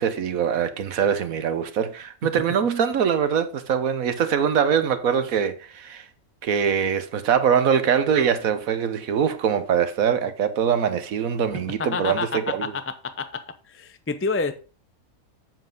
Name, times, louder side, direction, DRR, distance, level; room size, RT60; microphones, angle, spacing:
voice 1, 0.0-6.0 6.4-12.7, right 7 dB, 75° right, 1.4 m, -23 dB
voice 2, 11.8-13.4 13.7-14.5, left 4 dB, 15° left, 0.4 m, -28 dB
7.7 x 7.3 x 3.9 m
omnidirectional pair, 1.5 m